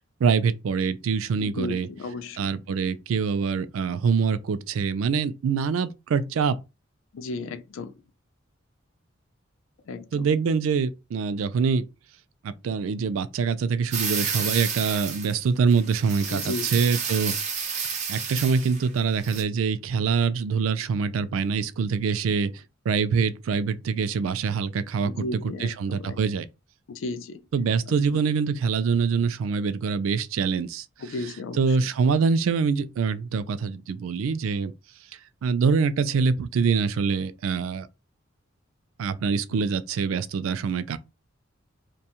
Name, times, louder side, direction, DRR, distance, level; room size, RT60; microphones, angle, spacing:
voice 1, 0.0-1.9 2.4-6.6 10.1-11.9 12.4-17.4 18.1-25.2 25.6-26.5 27.5-30.9 31.6-34.7 35.4-37.9 39.0-41.0, right 5 dB, 85° right, 0.3 m, -25 dB
voice 2, 1.4-2.4 7.1-8.0 9.9-10.3 16.3-16.9 25.0-26.2 26.9-27.4 31.0-31.8 39.6-39.7, left 3 dB, 75° left, 0.4 m, -34 dB
sound 1, 13.9-15.4 15.7-18.9 19.2-19.4, right 6 dB, 35° right, 0.5 m, -30 dB
2.6 x 2.2 x 2.8 m
head